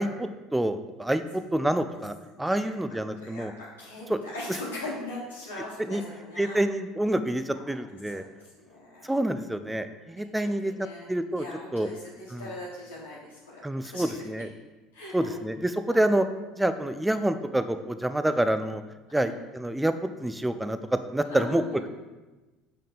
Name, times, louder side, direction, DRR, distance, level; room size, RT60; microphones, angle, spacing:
voice 1, 0.0-3.5 4.1-4.2 5.9-6.0 6.4-8.2 9.0-10.7 11.1-11.4 11.7-11.9 12.3-12.5 13.6-14.5 15.1-16.2 16.6-18.8 19.1-20.8 21.1-21.6, right 1 dB, 10° right, 10 dB, 0.4 m, -27 dB
voice 2, 3.2-6.6 7.5-7.7 8.1-8.2 8.6-9.2 10.4-11.1 11.3-14.3 14.9-15.1 15.9-16.1 19.2-19.4 21.2-21.8, left 2 dB, 90° left, -8 dB, 1.2 m, -40 dB
5.5 x 3.6 x 5.0 m, 1.2 s
hypercardioid pair, 75°, 0 cm